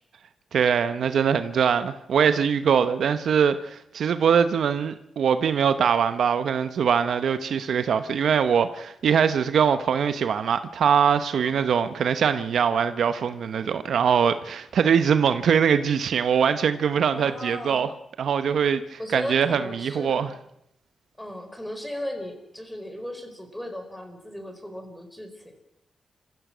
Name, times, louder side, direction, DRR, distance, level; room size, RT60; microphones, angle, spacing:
voice 1, 0.5-17.9 18.2-20.3, right 7 dB, 75° right, 0.9 m, -22 dB
voice 2, 11.3-11.7 17.1-17.8 19.0-20.3 21.2-25.6, left 1 dB, 5° left, 4.8 m, -36 dB
28.0 x 15.5 x 6.3 m
cardioid pair, 85°, 0 cm